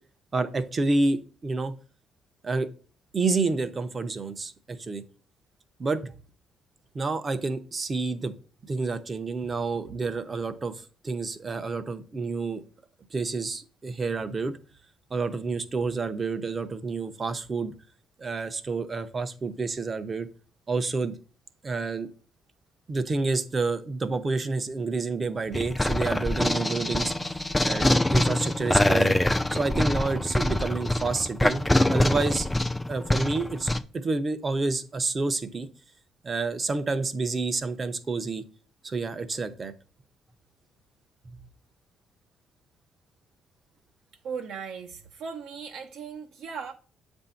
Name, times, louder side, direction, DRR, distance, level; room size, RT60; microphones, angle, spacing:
voice 1, 0.3-1.7 2.4-2.7 3.1-5.0 5.8-6.1 6.9-8.3 8.6-12.6 13.1-14.5 15.1-17.7 18.2-20.3 20.7-21.2 21.6-22.1 22.9-29.2 29.5-32.5 32.9-35.7 36.2-38.4 38.8-39.7 41.3-41.4, right 3 dB, 30° right, 0.7 m, -29 dB
sound 1, 25.5-33.8, left 1 dB, 10° left, 0.4 m, -24 dB
voice 2, 44.2-46.7, right 6 dB, 70° right, 0.7 m, -37 dB
7.9 x 2.7 x 5.6 m
cardioid pair, 125°, 0 cm